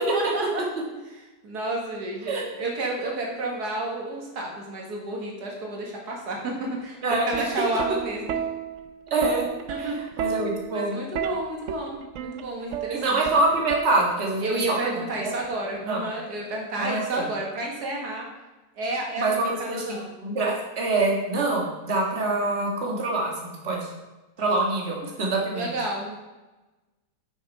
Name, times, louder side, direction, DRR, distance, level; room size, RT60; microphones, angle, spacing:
voice 1, 0.1-0.6 1.1-8.4 9.7-10.2 10.7-13.2 14.4-18.3 18.8-20.1 25.5-26.2, right 2 dB, 90° right, -1 dB, 2.2 m, -31 dB
Plucked string instrument, 7.1-14.4 15.4-15.8, right 8 dB, 65° right, 0.9 m, -32 dB
voice 2, 9.1-9.4 9.8-11.0 12.9-14.4 14.8-14.9 15.2-15.3 15.9-16.0 16.8-17.2 19.2-23.9 24.4-25.7, right 2 dB, 45° right, -1 dB, 1.8 m, -25 dB
7.0 x 6.3 x 5.3 m, 1.1 s
omnidirectional pair, 1.7 m